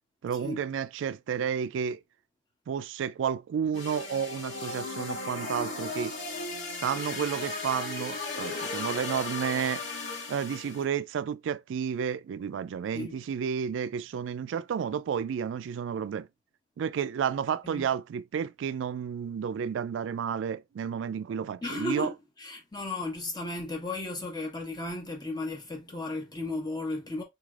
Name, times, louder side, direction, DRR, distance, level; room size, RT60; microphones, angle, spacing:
voice 1, 0.2-2.0 2.7-6.2 6.8-9.8 10.3-16.3 16.8-22.1, right 7 dB, 80° right, 0.3 m, -31 dB
sound 1, 3.7-10.8, left 3 dB, 75° left, 2.1 m, -36 dB
voice 2, 21.6-27.2, left 2 dB, 20° left, 1.1 m, -35 dB
4.1 x 3.2 x 2.4 m
head